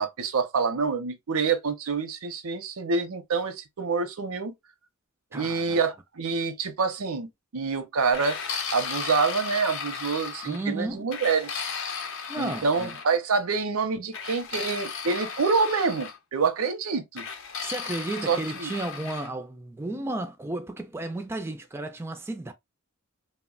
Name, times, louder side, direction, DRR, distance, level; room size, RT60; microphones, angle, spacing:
voice 1, 0.0-4.5 5.3-8.4 8.7-11.7 12.4-17.2 18.2-18.7, right 5 dB, 80° right, 0.6 m, -27 dB
voice 2, 5.3-5.8 10.4-11.1 12.3-12.9 17.6-22.5, right 2 dB, 10° right, 0.3 m, -33 dB
sound 1, 8.1-10.6 11.1-13.1 14.1-16.2 17.2-19.3, left 6 dB, 60° left, 0.6 m, -35 dB
3.2 x 2.1 x 2.3 m
head